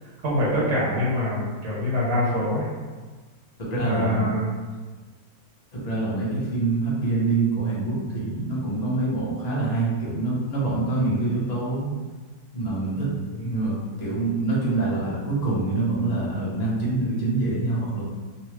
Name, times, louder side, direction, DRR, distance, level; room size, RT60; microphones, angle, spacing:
voice 1, 0.2-2.7 3.8-4.5 11.0-11.2 13.3-13.5, left 1 dB, 70° right, -6 dB, 1.7 m, -25 dB
voice 2, 3.6-4.3 5.7-11.9 12.5-13.1 13.4-18.0, right 2 dB, 45° left, -7 dB, 0.5 m, -25 dB
3.1 x 3.0 x 3.1 m, 1.4 s
omnidirectional pair, 2.1 m